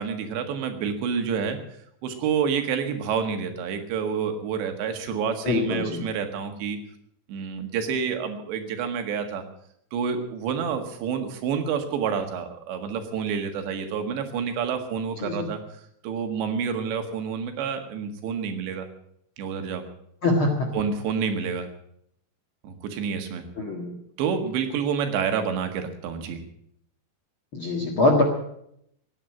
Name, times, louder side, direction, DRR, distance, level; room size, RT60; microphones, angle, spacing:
voice 1, 0.0-1.6 2.0-6.8 7.3-9.4 9.9-15.6 16.0-18.9 19.4-19.8 20.7-21.7 22.6-23.4 24.2-26.4, right 6 dB, 85° right, 6 dB, 3.9 m, -28 dB
voice 2, 5.4-6.0 15.2-15.5 20.2-20.7 23.6-23.9 27.5-28.2, left 2 dB, 50° left, 2 dB, 1.6 m, -23 dB
16.0 x 9.8 x 8.5 m, 0.74 s
omnidirectional pair, 4.9 m